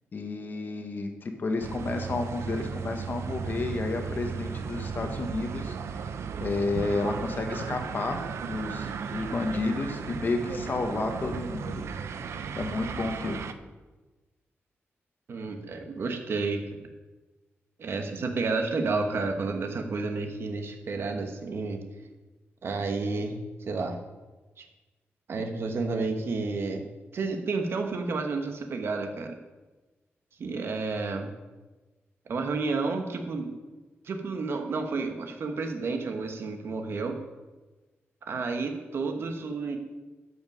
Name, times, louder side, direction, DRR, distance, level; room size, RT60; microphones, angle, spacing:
voice 1, 0.1-6.0 6.4-8.2 8.5-11.8 12.6-13.5, left 3 dB, 45° left, 5 dB, 1.2 m, -31 dB
sound 1, 1.6-13.5, right 6 dB, 75° right, 0.5 m, -35 dB
voice 2, 15.3-16.6 17.8-21.8 22.6-23.4 23.7-24.0 24.6-24.7 25.3-26.8 27.1-29.4 30.4-31.3 32.3-33.5 34.0-37.2 38.3-39.8, right 3 dB, 60° right, 5 dB, 1.2 m, -31 dB
12.5 x 5.6 x 5.3 m, 1.2 s
wide cardioid pair, 135°, 5 cm